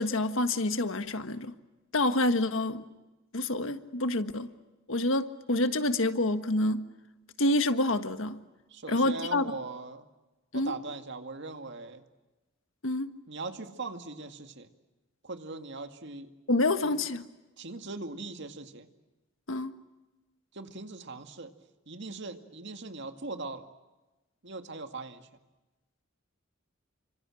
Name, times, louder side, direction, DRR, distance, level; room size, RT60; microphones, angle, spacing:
voice 1, 0.0-1.5 1.9-2.8 3.3-4.5 4.9-6.8 7.4-8.4 8.9-9.4 10.5-10.7 12.8-13.1 16.5-17.2 19.5-19.7, left 2 dB, 70° left, 1.6 m, -27 dB
voice 2, 8.7-10.1 10.5-12.0 13.3-14.7 15.2-16.3 16.8-17.0 17.6-18.9 20.5-21.5 21.9-23.7 24.4-25.3, right 3 dB, 60° right, 2.2 m, -40 dB
30.0 x 26.0 x 7.7 m
head